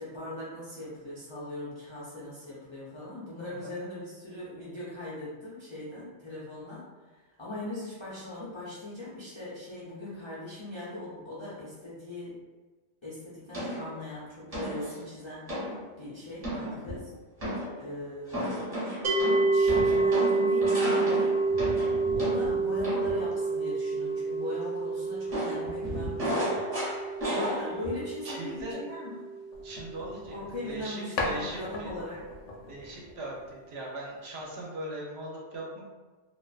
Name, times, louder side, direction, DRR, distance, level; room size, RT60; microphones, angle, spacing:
voice 1, 0.0-12.4 13.0-15.5 16.0-16.5 16.8-17.0 17.8-18.6 19.5-21.4 22.2-26.5 27.3-29.3 30.3-32.2, left 1 dB, 50° left, -9 dB, 0.3 m, -40 dB
voice 2, 3.5-3.8 16.5-16.8 28.2-28.8 29.6-31.9 32.7-35.8, right 1 dB, 65° right, -3 dB, 0.8 m, -40 dB
sound 1, 13.5-13.9 14.5-14.9 15.5-15.8 16.4-17.0 17.4-17.8 18.3-23.2 25.3-28.0 28.3-28.6, equal, 35° right, 0.9 m, -33 dB
sound 2, 19.0-30.2, right 3 dB, 90° right, 0.9 m, -29 dB
sound 3, 29.5-30.9 31.2-33.8, left 2 dB, 75° left, 0.9 m, -38 dB
2.4 x 2.2 x 2.3 m, 1.3 s
omnidirectional pair, 1.3 m